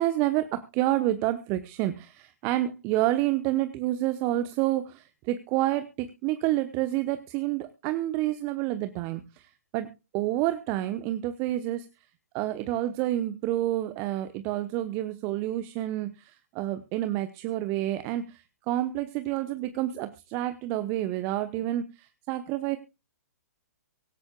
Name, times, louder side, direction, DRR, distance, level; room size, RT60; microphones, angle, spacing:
voice 1, 0.0-11.9 12.3-22.8, right 14 dB, 30° right, 10 dB, 0.9 m, -29 dB
24.0 x 8.2 x 2.3 m, 0.28 s
figure-of-eight pair, 120°, 8 cm